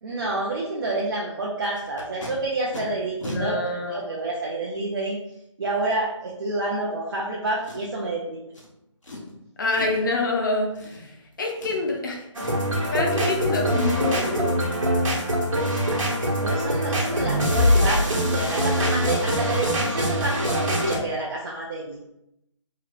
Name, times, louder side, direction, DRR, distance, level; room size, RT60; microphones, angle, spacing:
voice 1, 0.0-3.6 3.9-5.2 5.6-8.4 16.1-22.0, right 2 dB, 45° right, -3 dB, 0.5 m, -29 dB
Packing tape duct tape, 1.7-2.3 2.7-2.8 3.2-3.4 4.2-4.3 7.6-8.1 8.5-8.7 9.0-9.3 9.7-10.1 10.7-11.3 11.5-12.0 12.4-12.5 12.8-13.2 16.2-16.3 16.7-16.8 17.2-17.3 17.6-17.9 18.1-18.2, left 1 dB, 75° left, 1.0 m, -39 dB
voice 2, 3.3-4.1 9.6-11.1 11.4-12.2 12.9-14.7, left 2 dB, 40° left, 1 dB, 0.5 m, -26 dB
sound 1, 12.3-21.0, equal, 85° right, 1.1 m, -23 dB
3.0 x 2.9 x 2.4 m, 0.82 s
figure-of-eight pair, 155°, 16 cm